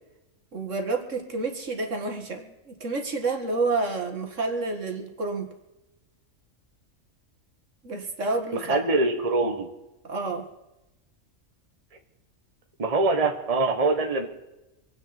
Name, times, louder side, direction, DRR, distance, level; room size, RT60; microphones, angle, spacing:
voice 1, 0.5-5.5 7.8-8.8 10.0-10.5, right 3 dB, 65° right, 4 dB, 2.2 m, -29 dB
voice 2, 8.7-9.7 12.8-14.3, right 3 dB, 30° right, 3 dB, 1.4 m, -23 dB
26.0 x 9.6 x 4.3 m, 0.97 s
omnidirectional pair, 1.4 m